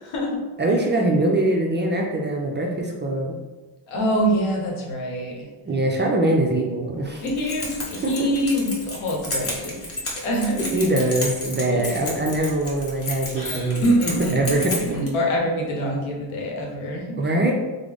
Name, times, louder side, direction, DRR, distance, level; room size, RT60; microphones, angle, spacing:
voice 1, 0.0-0.4 3.9-5.5 7.2-9.8 10.2-10.8 11.7-11.8 13.8-17.2, equal, 85° left, -1 dB, 0.9 m, -25 dB
voice 2, 0.6-3.3 5.7-7.3 8.0-8.3 10.7-13.8 14.3-14.8 17.2-17.5, right 1 dB, 25° right, 0 dB, 0.3 m, -22 dB
Keys jangling, 7.2-15.1, left 1 dB, 30° left, 0.9 m, -32 dB
3.6 x 2.0 x 3.4 m, 1.2 s
cardioid pair, 105°, 47 cm